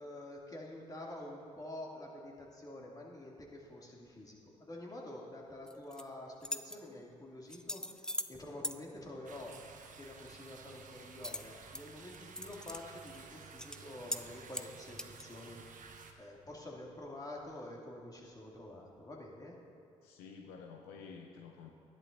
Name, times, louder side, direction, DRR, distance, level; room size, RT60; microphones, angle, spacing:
voice 1, 0.0-9.7 10.0-15.9 16.2-19.5, left 1 dB, 25° left, -3 dB, 2.5 m, -48 dB
sound 1, 5.7-6.0 6.4-6.8 7.5-8.3 8.6-8.8 11.2-11.8 12.1-12.8 13.1-13.2 13.6-13.8 14.1-14.2 14.5-15.2, left 1 dB, 5° left, 0.5 m, -40 dB
sound 2, 9.2-16.1, right 5 dB, 55° right, 1.0 m, -53 dB
voice 2, 20.0-21.7, left 5 dB, 85° left, 2 dB, 0.7 m, -50 dB
13.5 x 10.5 x 2.6 m, 2.5 s
hypercardioid pair, 45°, 16 cm